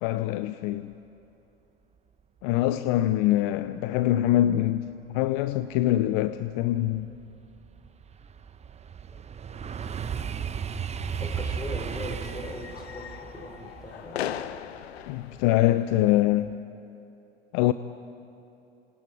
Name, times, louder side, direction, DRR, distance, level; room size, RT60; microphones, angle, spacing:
voice 1, 0.0-0.9 2.4-4.9 5.1-7.1 15.1-16.5 17.5-17.7, left 14 dB, 60° left, 0.7 m, -24 dB
sound 1, 6.0-6.1 6.6-15.7 16.1-16.5, right 7 dB, 20° right, 0.9 m, -36 dB
voice 2, 9.5-9.9 11.2-14.3, left 1 dB, 15° left, 4.0 m, -40 dB
sound 2, 10.9-16.3, left 10 dB, 85° left, 0.9 m, -39 dB
27.5 x 27.0 x 5.0 m
hypercardioid pair, 95°, 31 cm